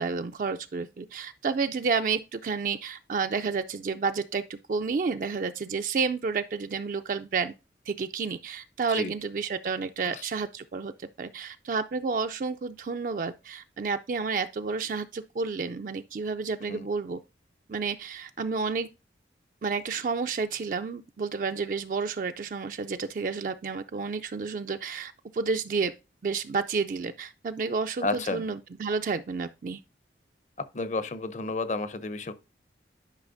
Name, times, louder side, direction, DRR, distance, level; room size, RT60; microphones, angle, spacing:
voice 1, 0.0-7.5 7.9-17.2 17.7-18.9 19.6-25.9 26.2-29.8, right 5 dB, 45° right, 0.3 m, -30 dB
voice 2, 28.0-28.4 30.7-32.3, left 3 dB, 40° left, 0.6 m, -31 dB
11.5 x 5.5 x 2.6 m
head